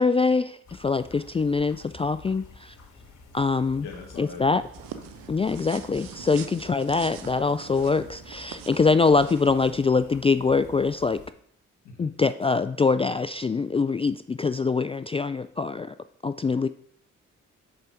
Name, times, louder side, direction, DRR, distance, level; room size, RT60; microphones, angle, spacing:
voice 1, 0.0-2.7 3.3-3.9 4.2-4.6 5.3-11.2 12.0-15.9 16.2-16.7, left 4 dB, 20° left, 12 dB, 0.3 m, -24 dB
sound 1, 0.6-11.3, left 3 dB, 65° left, 2.2 m, -49 dB
voice 2, 3.8-4.6 11.8-12.1, left 4 dB, 85° left, -1 dB, 1.4 m, -41 dB
sound 2, 4.7-9.8, right 9 dB, 80° right, 0.8 m, -44 dB
6.7 x 4.8 x 5.7 m, 0.65 s
hypercardioid pair, 45°, 33 cm